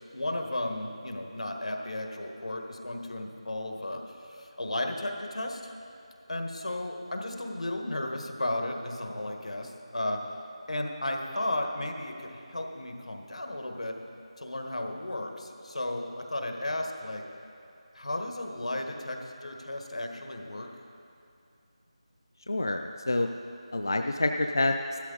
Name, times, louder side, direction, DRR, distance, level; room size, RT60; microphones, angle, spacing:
voice 1, 0.1-5.6 6.3-10.2 10.7-14.0 14.4-17.2 17.9-20.7, left 1 dB, 80° left, 3 dB, 1.5 m, -34 dB
voice 2, 22.5-23.3 23.7-25.0, left 2 dB, 35° left, 5 dB, 0.3 m, -27 dB
13.5 x 12.5 x 4.0 m, 2.7 s
figure-of-eight pair, 180°, 3 cm